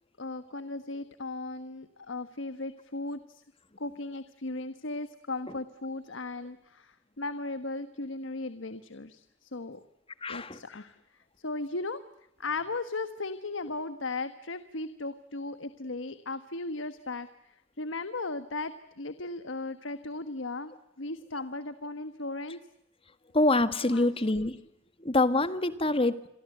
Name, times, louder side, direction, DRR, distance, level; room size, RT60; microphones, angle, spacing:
voice 1, 0.2-3.4 3.8-9.8 10.3-11.0 11.4-12.0 12.4-17.3 17.8-22.6 23.8-24.1 24.4-24.5, left 3 dB, 85° left, 12 dB, 1.3 m, -36 dB
voice 2, 10.2-10.6 23.3-24.6 25.0-26.2, left 2 dB, 30° left, 12 dB, 1.6 m, -25 dB
29.0 x 23.0 x 7.9 m, 0.83 s
head